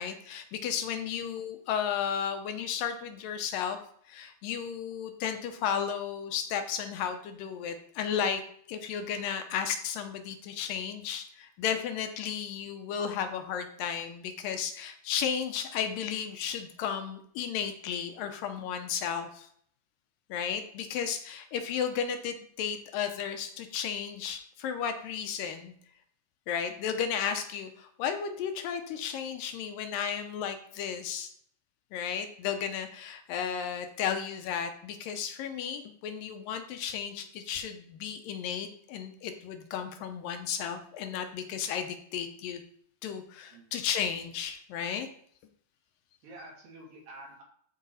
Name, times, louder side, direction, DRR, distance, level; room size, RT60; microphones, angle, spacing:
voice 1, 0.0-3.8 4.1-8.4 8.7-19.5 20.3-25.7 26.5-31.3 31.9-42.6 43.0-45.1, left 8 dB, 75° left, 7 dB, 2.3 m, -34 dB
voice 2, 46.2-47.4, right 1 dB, 70° right, -4 dB, 4.6 m, -48 dB
13.5 x 4.6 x 4.1 m, 0.62 s
omnidirectional pair, 4.4 m